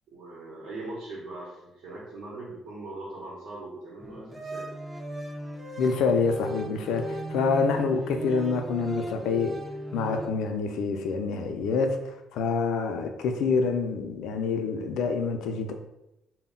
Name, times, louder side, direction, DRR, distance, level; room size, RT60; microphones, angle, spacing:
voice 1, 0.1-4.7, right 2 dB, 75° right, -6 dB, 0.7 m, -40 dB
sound 1, 4.0-10.3, right 1 dB, 15° right, 0.3 m, -36 dB
voice 2, 5.8-9.6 9.9-15.7, left 4 dB, 85° left, 6 dB, 0.3 m, -27 dB
2.0 x 2.0 x 3.6 m, 0.88 s
cardioid pair, 155°, 0 cm